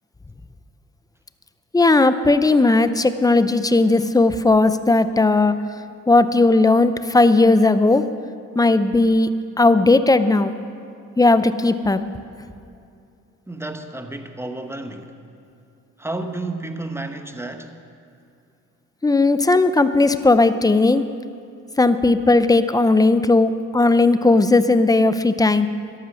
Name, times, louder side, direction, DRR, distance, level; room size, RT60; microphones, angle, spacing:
voice 1, 1.7-5.5 6.1-8.0 8.5-9.3 9.6-10.5 11.2-12.0 19.0-21.0 21.8-25.7, left 2 dB, 10° left, 0.6 m, -16 dB
voice 2, 13.5-15.2 16.0-17.8, right 2 dB, 10° right, 1.0 m, -31 dB
13.0 x 11.5 x 6.4 m
cardioid pair, 90°, 30 cm